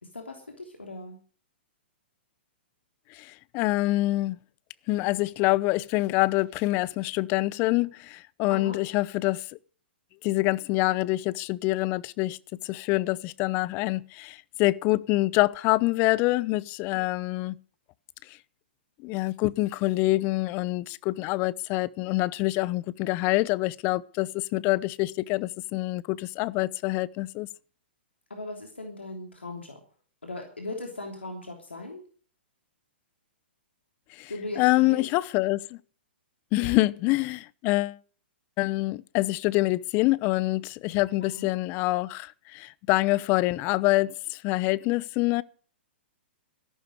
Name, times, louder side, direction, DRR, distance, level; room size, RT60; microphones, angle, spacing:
voice 1, 0.0-1.2 8.5-8.8 28.3-29.8 30.2-32.0 34.3-35.1 36.6-36.8 41.2-41.5, left 2 dB, 90° left, 3.2 m, -38 dB
voice 2, 3.2-4.4 4.9-9.4 10.2-12.4 12.6-17.5 19.0-27.5 34.2-34.3 34.6-35.8 36.5-38.0 38.6-45.4, left 20 dB, 35° left, 0.7 m, -26 dB
13.5 x 12.0 x 6.3 m
hypercardioid pair, 120°, 6 cm